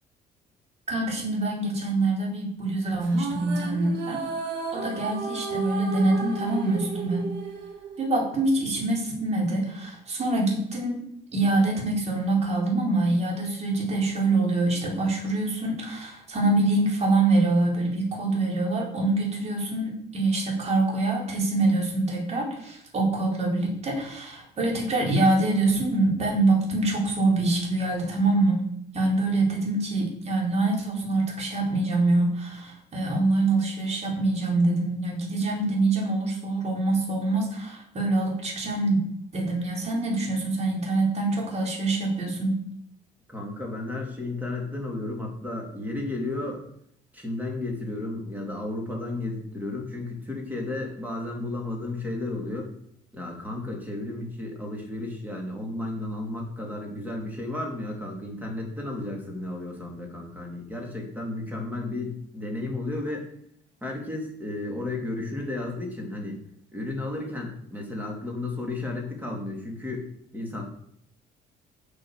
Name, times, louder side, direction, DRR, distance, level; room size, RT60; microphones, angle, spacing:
voice 1, 0.9-4.2 4.7-7.3 8.0-11.0 11.3-28.6 28.9-39.0 39.3-42.6, right 2 dB, 40° right, -1 dB, 4.4 m, -25 dB
sound 1, 3.0-8.5, right 4 dB, 80° right, 2.1 m, -33 dB
voice 2, 43.3-46.6 47.1-52.7 53.1-63.3 63.8-66.4 66.7-70.1 70.3-70.6, left 2 dB, 10° right, 0 dB, 3.6 m, -33 dB
8.3 x 7.7 x 6.9 m, 0.70 s
cardioid pair, 110°, 17 cm